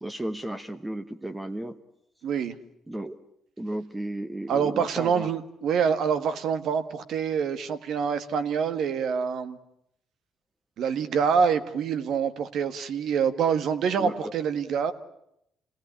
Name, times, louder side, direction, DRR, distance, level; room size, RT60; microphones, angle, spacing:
voice 1, 0.0-1.8 2.9-3.2 3.6-5.3 14.0-14.3, right 1 dB, 10° right, 8 dB, 1.1 m, -34 dB
voice 2, 2.2-2.5 4.5-9.6 10.8-14.9, right 7 dB, 65° right, 10 dB, 1.7 m, -26 dB
27.0 x 18.0 x 9.9 m, 0.79 s
cardioid pair, 110°, 0 cm